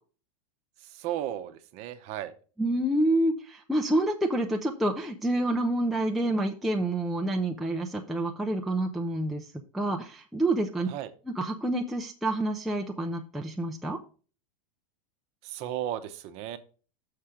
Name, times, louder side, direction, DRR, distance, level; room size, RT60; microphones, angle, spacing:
voice 1, 0.8-2.3 10.9-11.1 15.4-16.6, right 12 dB, 35° right, 10 dB, 0.7 m, -35 dB
voice 2, 2.6-10.9 11.3-14.0, right 1 dB, ahead, 1 dB, 0.3 m, -28 dB
6.6 x 5.0 x 5.8 m, 0.38 s
supercardioid pair, 160°, 19 cm